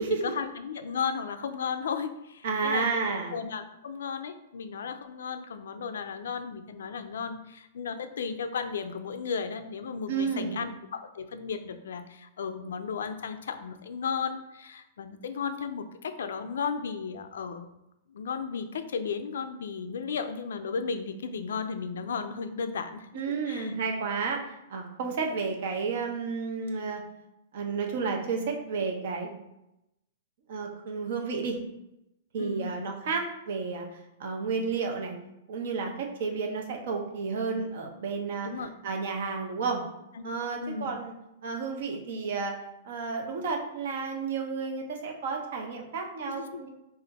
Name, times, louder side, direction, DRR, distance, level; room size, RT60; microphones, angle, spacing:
voice 1, 0.0-2.8 3.3-17.7 18.1-23.7 32.4-32.8 38.4-38.7 40.1-40.3 40.6-41.0 46.4-46.7, left 6 dB, 90° left, 9 dB, 0.4 m, -34 dB
voice 2, 2.4-3.3 10.1-10.7 23.1-27.0 27.5-29.3 30.5-31.6 32.3-35.2 35.5-38.5 38.8-39.8 40.2-41.1 41.4-42.6 42.8-46.7, right 4 dB, 55° right, 3 dB, 0.7 m, -31 dB
3.3 x 2.5 x 4.0 m, 0.87 s
hypercardioid pair, 170°, 0 cm